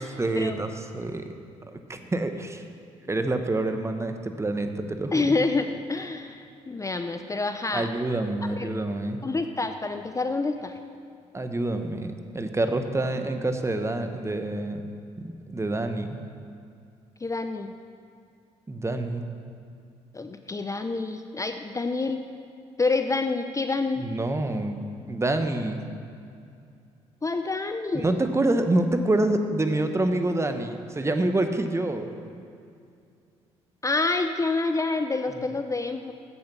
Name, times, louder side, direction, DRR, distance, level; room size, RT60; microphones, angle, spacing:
voice 1, 0.2-1.3 1.7-2.6 3.1-5.4 7.7-9.2 11.3-14.8 15.2-16.2 18.7-19.2 24.0-24.8 25.1-25.8 27.9-32.1, right 2 dB, 20° right, 7 dB, 0.9 m, -27 dB
voice 2, 5.1-7.9 8.6-8.7 9.2-10.8 17.2-17.8 20.1-22.2 22.8-24.0 27.2-28.2 33.8-36.1, left 3 dB, 20° left, 7 dB, 0.5 m, -27 dB
7.8 x 7.0 x 6.7 m, 2.4 s
hypercardioid pair, 55°, 14 cm